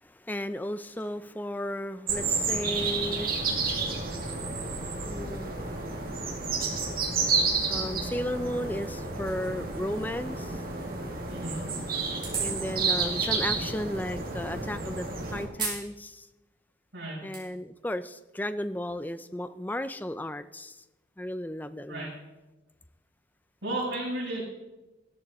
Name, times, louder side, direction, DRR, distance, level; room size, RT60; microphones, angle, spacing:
voice 1, 0.0-4.1 5.1-5.6 7.7-10.6 12.4-16.3 17.2-20.8 21.2-22.1, left 1 dB, 10° left, 12 dB, 0.5 m, -34 dB
sound 1, 2.1-15.4, right 4 dB, 50° right, 2.3 m, -30 dB
voice 2, 11.3-11.7 16.9-17.2 21.9-22.1 23.6-24.4, right 1 dB, 80° right, -10 dB, 6.0 m, -33 dB
sound 2, 12.2-12.6 13.6-13.7 15.5-15.9 16.3-16.4 17.0-17.4, right 4 dB, 25° right, 4.6 m, -34 dB
15.0 x 13.5 x 4.3 m, 1.1 s
head